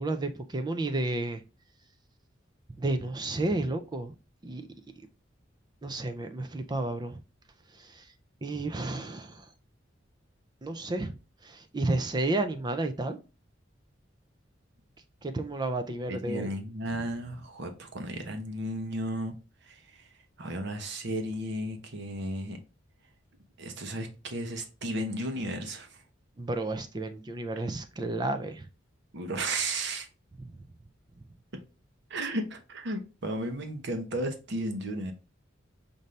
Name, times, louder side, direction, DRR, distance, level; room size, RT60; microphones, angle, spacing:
voice 1, 0.0-1.4 2.8-4.1 4.4-4.7 5.8-7.2 7.7-8.1 8.4-9.5 10.6-11.2 11.4-13.2 15.2-16.5 26.4-28.7 30.4-30.5, right 2 dB, 20° right, 0.4 m, -31 dB
voice 2, 16.1-19.3 19.6-20.1 20.4-22.6 23.6-26.0 29.1-30.1 32.1-35.1, right 1 dB, 65° right, 0.9 m, -34 dB
5.4 x 2.6 x 3.2 m
head